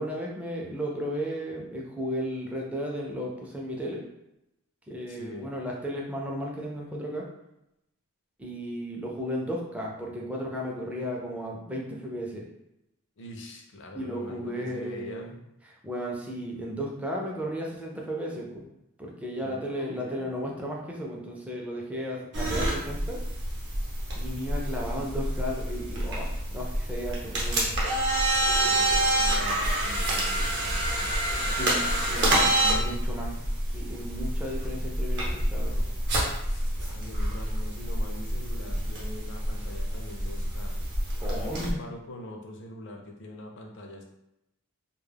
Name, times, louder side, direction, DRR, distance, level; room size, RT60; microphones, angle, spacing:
voice 1, 0.0-4.0 4.9-7.3 8.4-12.5 13.9-15.3 15.6-18.7 19.0-23.2 24.1-27.8 31.3-33.4 33.7-35.8 41.2-41.8, equal, 5° right, -2 dB, 0.4 m, -34 dB
voice 2, 5.1-5.5 13.2-15.4 19.4-20.4 27.3-27.9 28.6-31.2 36.5-40.8 41.3-44.0, left 1 dB, 55° left, 2 dB, 0.5 m, -43 dB
sound 1, 22.3-41.7, right 1 dB, 55° right, 0.7 m, -28 dB
2.2 x 2.0 x 3.3 m, 0.88 s
head